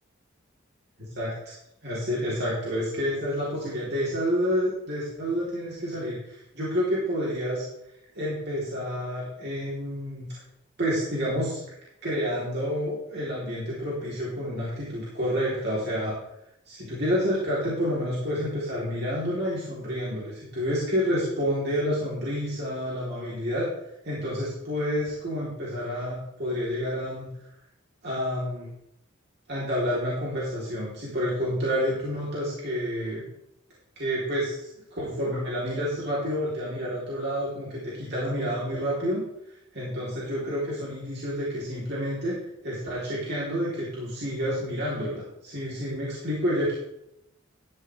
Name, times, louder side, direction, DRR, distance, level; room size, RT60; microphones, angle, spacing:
voice 1, 1.0-1.5 1.8-7.7 8.2-10.3 10.8-11.6 12.0-16.2 16.7-23.7 24.0-27.3 28.0-28.7 29.5-33.2 34.0-39.2 39.7-42.4 42.6-46.7, equal, 55° right, -7 dB, 3.4 m, -29 dB
13.0 x 10.5 x 3.4 m, 0.80 s
head